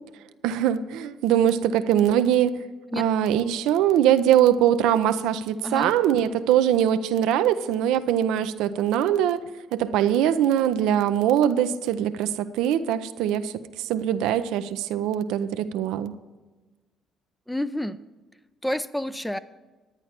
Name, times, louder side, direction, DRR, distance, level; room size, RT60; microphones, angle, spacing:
voice 1, 0.4-2.6 3.0-9.4 9.7-16.1, right 10 dB, 80° right, 11 dB, 0.5 m, -22 dB
voice 2, 17.5-18.0 18.6-19.4, left 1 dB, 5° left, 14 dB, 0.5 m, -29 dB
10.5 x 9.8 x 4.3 m, 1.2 s
hypercardioid pair, 60°, 0 cm